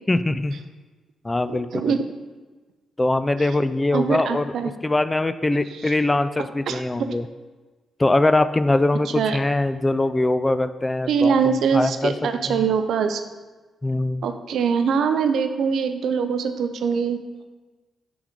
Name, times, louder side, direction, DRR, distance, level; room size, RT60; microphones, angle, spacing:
voice 1, 0.1-0.5 1.2-1.9 3.0-4.4 4.8-7.3 8.0-12.1 12.5-12.6 13.8-14.2, left 2 dB, 20° left, 12 dB, 0.3 m, -22 dB
voice 2, 1.5-2.0 3.9-4.7 5.7-5.9 6.7-6.8 9.1-9.4 11.1-13.2 14.2-17.2, right 6 dB, 75° right, 8 dB, 0.4 m, -23 dB
6.0 x 4.0 x 5.0 m, 1.3 s
cardioid pair, 65°, 0 cm